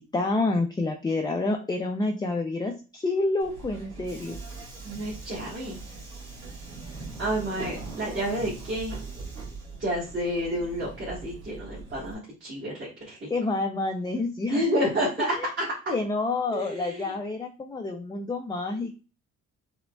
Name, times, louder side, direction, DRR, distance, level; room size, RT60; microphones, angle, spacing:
voice 1, 0.0-4.4 13.3-14.8 15.4-15.5 15.9-18.9, left 2 dB, 15° left, 3 dB, 0.4 m, -28 dB
Subway metro underground, 3.4-12.1, right 3 dB, 85° right, 1.5 m, -41 dB
voice 2, 4.8-5.8 7.2-9.0 9.8-13.3 14.5-15.9 16.5-17.1, equal, 40° right, -6 dB, 1.4 m, -30 dB
4.8 x 2.2 x 2.2 m, 0.33 s
cardioid pair, 90°, 30 cm